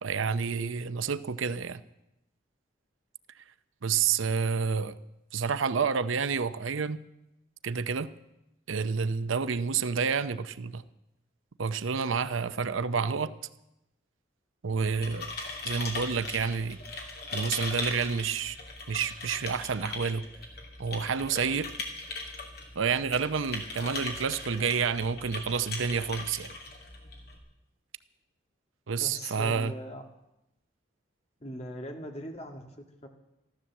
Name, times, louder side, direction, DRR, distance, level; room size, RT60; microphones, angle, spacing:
voice 1, 0.0-1.8 3.8-5.0 5.3-7.0 7.6-8.1 8.7-10.8 11.6-13.3 14.6-15.3 15.6-16.8 17.3-18.6 18.9-20.3 20.8-21.7 22.8-26.5 28.9-29.7, right 6 dB, 90° right, 14 dB, 0.6 m, -29 dB
sound 1, 14.7-27.4, left 3 dB, 50° left, 2.7 m, -39 dB
voice 2, 29.0-30.0 31.4-33.1, equal, 35° left, 3 dB, 1.8 m, -41 dB
14.0 x 13.0 x 7.3 m, 0.90 s
head